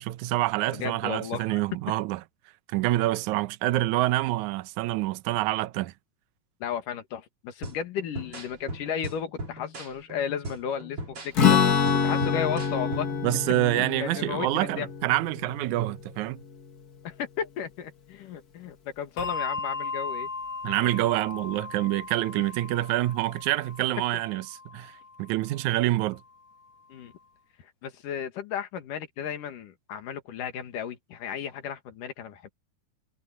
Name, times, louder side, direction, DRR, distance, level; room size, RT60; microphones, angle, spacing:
voice 1, 0.0-2.2 2.7-5.9 13.2-16.4 20.6-26.2, right 16 dB, 75° right, 2.1 m, -27 dB
voice 2, 0.7-1.6 6.6-11.6 12.0-13.1 13.7-14.9 17.0-20.3 26.9-27.1 27.8-32.5, left 8 dB, 85° left, 3.4 m, -34 dB
sound 1, 7.6-13.3, right 1 dB, 45° right, 5.7 m, -39 dB
Strum, 11.3-17.0, left 6 dB, 35° left, 1.8 m, -26 dB
Bell, 19.2-26.0, left 4 dB, 60° left, 2.3 m, -37 dB
omnidirectional pair, 3.6 m